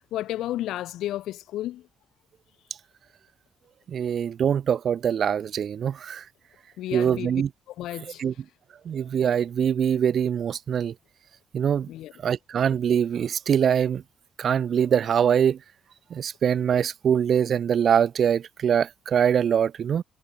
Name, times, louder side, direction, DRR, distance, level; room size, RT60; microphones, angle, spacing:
voice 1, 0.1-1.9 6.8-7.3 7.7-8.2 11.9-12.1, left 14 dB, 85° left, 3.1 m, -32 dB
voice 2, 3.9-6.2 6.9-7.5 8.2-8.3 8.9-10.9 11.5-11.9 12.2-14.0 14.4-15.6 16.1-20.0, right 8 dB, 60° right, 0.3 m, -23 dB
cardioid pair, 90°, 0 cm